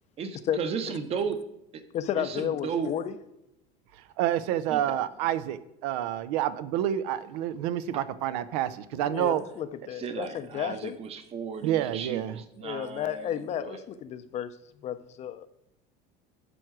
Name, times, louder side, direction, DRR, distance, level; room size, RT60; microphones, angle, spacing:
voice 1, 0.2-1.4 1.7-1.8 2.2-2.9 4.7-4.8 10.0-13.8, right 6 dB, 30° right, 10 dB, 0.9 m, -35 dB
voice 2, 1.9-3.2 8.9-11.0 12.6-14.5 14.8-15.5, left 10 dB, 35° left, 11 dB, 0.6 m, -32 dB
voice 3, 4.2-9.4 11.6-12.4, right 11 dB, 80° right, 14 dB, 0.7 m, -28 dB
11.5 x 4.6 x 6.0 m, 0.85 s
cardioid pair, 150°, 20 cm